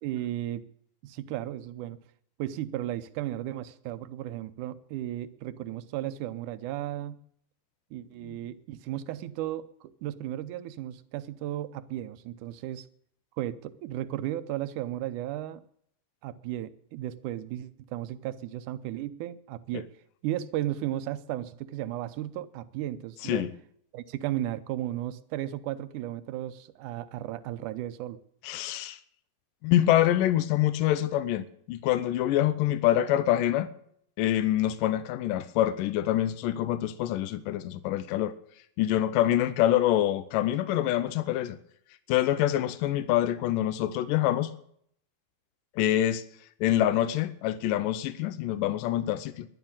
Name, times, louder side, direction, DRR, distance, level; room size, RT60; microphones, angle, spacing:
voice 1, 0.0-0.7 1.0-2.0 2.4-7.2 7.9-12.9 13.4-15.6 16.2-19.9 20.2-23.5 23.9-28.2, right 13 dB, 75° right, 13 dB, 2.2 m, -35 dB
voice 2, 28.4-29.0 29.6-33.7 34.2-38.3 38.8-41.6 42.1-44.5 45.8-46.2 46.6-49.5, left 13 dB, 80° left, 14 dB, 2.4 m, -25 dB
12.0 x 11.0 x 8.8 m, 0.66 s
omnidirectional pair, 4.0 m